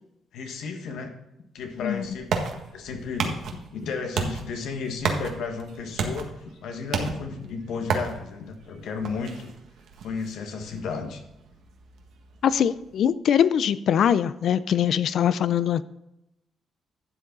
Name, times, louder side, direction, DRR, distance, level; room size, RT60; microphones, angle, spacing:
voice 1, 0.3-1.1 1.5-2.3 2.7-9.5 10.0-11.2, left 5 dB, 80° left, 4 dB, 1.5 m, -33 dB
sound 1, 1.6-13.0, right 5 dB, 75° right, 1.5 m, -34 dB
voice 2, 12.4-15.8, left 9 dB, 65° left, 16 dB, 0.5 m, -22 dB
12.0 x 7.4 x 3.9 m, 0.88 s
cardioid pair, 95°, 0 cm